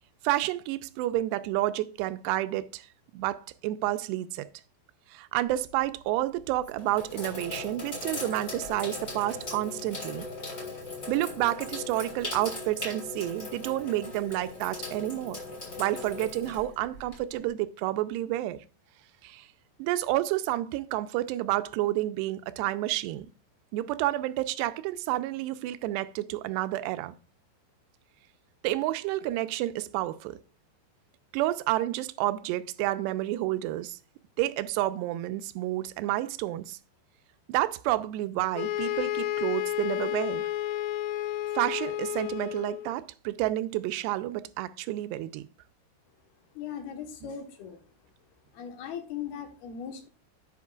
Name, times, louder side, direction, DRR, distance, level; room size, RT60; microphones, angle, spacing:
voice 1, 0.2-2.9 3.1-4.5 5.1-10.3 11.1-15.4 15.8-18.6 19.2-19.5 19.8-23.3 23.7-27.1 28.6-30.4 31.3-34.0 34.4-36.8 37.5-40.5 41.6-45.5, right 15 dB, 80° right, 2.6 m, -30 dB
Sink (filling or washing), 5.5-5.9 6.5-17.4, left 3 dB, 25° left, 2.1 m, -39 dB
sound 1, 38.5-42.9, left 13 dB, 90° left, 3.1 m, -31 dB
voice 2, 46.5-47.8 48.5-50.1, left 8 dB, 70° left, 2.9 m, -38 dB
10.5 x 8.1 x 2.4 m
omnidirectional pair, 5.1 m